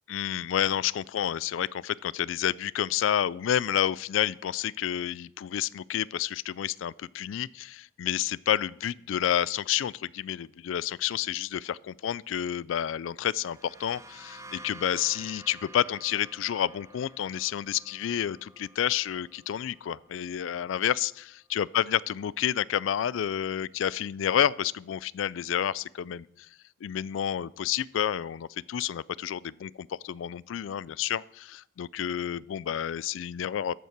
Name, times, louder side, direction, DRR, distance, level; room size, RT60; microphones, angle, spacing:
voice 1, 0.1-26.5 26.8-33.7, left 10 dB, 80° left, 22 dB, 0.3 m, -30 dB
sound 1, 13.2-20.8, right 1 dB, 15° right, 0.7 m, -51 dB
13.5 x 5.6 x 6.0 m, 0.76 s
head